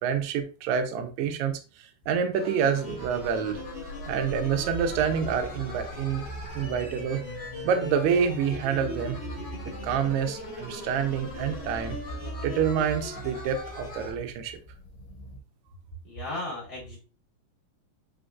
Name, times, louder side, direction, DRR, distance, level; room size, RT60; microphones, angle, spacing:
voice 1, 0.0-3.6 4.1-6.2 6.5-7.2 7.6-9.2 9.8-12.0 12.4-14.6, right 7 dB, 80° right, 5 dB, 1.7 m, -27 dB
sound 1, 2.3-14.1, left 1 dB, 10° left, 1.3 m, -40 dB
sound 2, 2.9-15.4, right 1 dB, 85° left, 2.4 m, -42 dB
voice 2, 16.0-17.0, left 1 dB, 25° left, -4 dB, 1.9 m, -35 dB
5.0 x 3.8 x 2.3 m, 0.34 s
omnidirectional pair, 3.9 m